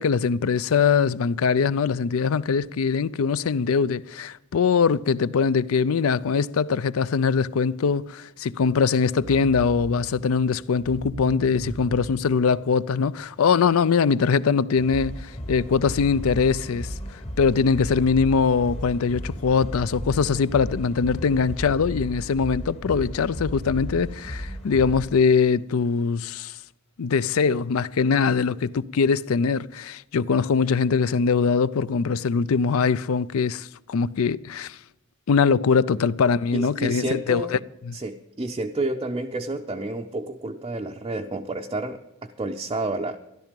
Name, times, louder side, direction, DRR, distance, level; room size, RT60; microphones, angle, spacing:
voice 1, 0.0-16.9 17.4-26.6 27.0-34.8 35.3-37.6 37.9-38.0, left 5 dB, 70° left, 0.4 m, -22 dB
sound 1, 9.2-13.2, right 2 dB, 75° right, 0.6 m, -38 dB
sound 2, 14.8-25.1, equal, 30° left, 1.2 m, -34 dB
voice 2, 36.5-37.6 37.9-43.2, right 2 dB, 25° right, 0.5 m, -30 dB
13.5 x 12.0 x 5.2 m
head